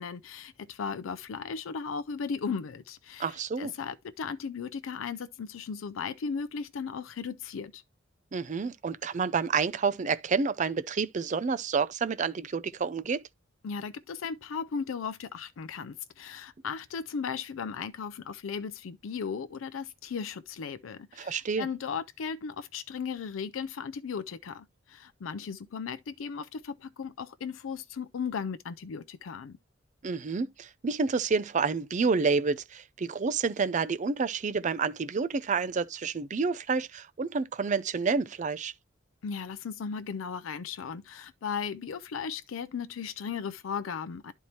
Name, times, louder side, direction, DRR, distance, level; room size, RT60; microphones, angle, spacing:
voice 1, 0.0-7.8 13.6-29.6 39.2-44.3, left 6 dB, 90° left, 0.4 m, -36 dB
voice 2, 3.2-3.7 8.3-13.2 21.2-21.7 30.0-38.7, right 5 dB, 40° right, 0.4 m, -29 dB
11.0 x 4.5 x 2.8 m
head